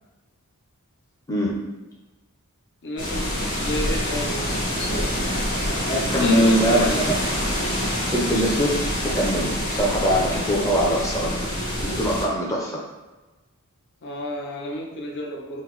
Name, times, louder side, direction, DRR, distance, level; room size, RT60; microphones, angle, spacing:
voice 1, 1.3-1.7 5.9-7.1 7.9-11.4 11.8-12.8, equal, 15° left, -4 dB, 0.6 m, -22 dB
voice 2, 2.8-5.2 6.1-7.0 14.0-15.6, left 1 dB, 55° left, 0 dB, 0.6 m, -31 dB
sound 1, 3.0-12.3, equal, 40° left, 1.2 m, -26 dB
5.6 x 2.1 x 3.0 m, 1.1 s
head